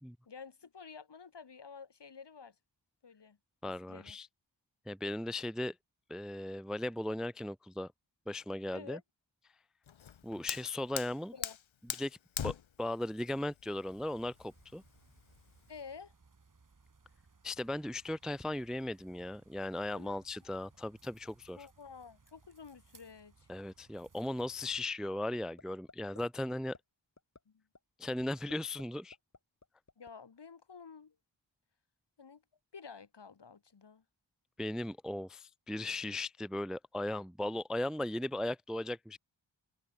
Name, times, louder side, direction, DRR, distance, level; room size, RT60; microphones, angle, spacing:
voice 1, 0.3-2.6 3.0-3.4 3.6-4.2 8.7-9.0 11.3-11.6 15.7-16.1 19.9-20.2 21.6-23.5 27.5-27.6 30.0-31.2 32.2-32.4 32.7-34.0, left 5 dB, 60° left, 2.2 m, -51 dB
voice 2, 3.6-4.3 4.9-5.7 6.1-7.9 8.3-9.0 10.2-11.3 12.0-12.2 12.4-14.8 17.4-21.7 23.5-26.7 28.0-29.2 34.6-39.2, left 1 dB, ahead, 0.5 m, -37 dB
Fire, 9.9-15.8, left 8 dB, 80° left, 1.1 m, -43 dB
sound 1, 13.9-24.8, right 4 dB, 40° right, 2.7 m, -65 dB
sound 2, 25.3-25.6 25.9-26.2 26.5-26.8 27.2-27.4 27.7-27.8 28.2-28.8 29.1-30.1, left 3 dB, 35° left, 2.3 m, -54 dB
open air
wide cardioid pair, 95°, 46 cm